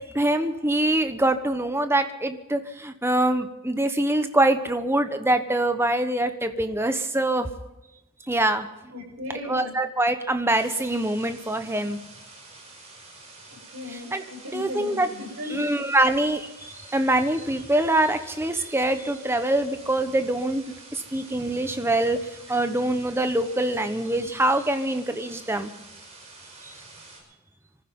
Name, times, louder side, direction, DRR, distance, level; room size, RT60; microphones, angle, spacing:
voice 1, 0.1-7.5 8.3-8.7 9.5-12.0 14.1-14.2 14.5-15.1 15.5-20.6 20.9-22.2 22.5-25.7, right 1 dB, 10° right, 8 dB, 1.1 m, -24 dB
voice 2, 8.9-9.8 13.7-15.7, left 1 dB, 70° right, 1 dB, 7.0 m, -36 dB
sound 1, 10.5-27.2, right 3 dB, 30° right, 5.3 m, -47 dB
24.5 x 15.0 x 3.8 m, 0.97 s
head